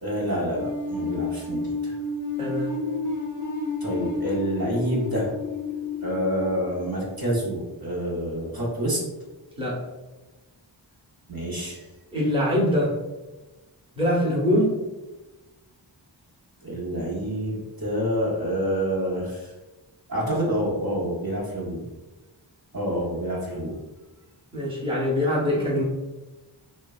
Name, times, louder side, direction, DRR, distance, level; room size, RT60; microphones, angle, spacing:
voice 1, 0.0-1.9 3.8-5.3 6.0-9.0 11.3-11.8 16.6-19.5 20.1-21.8 22.7-23.8, equal, 50° right, -5 dB, 0.8 m, -27 dB
sound 1, 0.6-7.4, left 3 dB, 45° left, 0.5 m, -31 dB
voice 2, 2.4-2.7 9.6-9.8 12.1-13.0 14.0-14.8 24.5-25.8, left 1 dB, 10° right, -5 dB, 0.8 m, -23 dB
3.1 x 2.1 x 2.3 m, 1.1 s
wide cardioid pair, 45°, 46 cm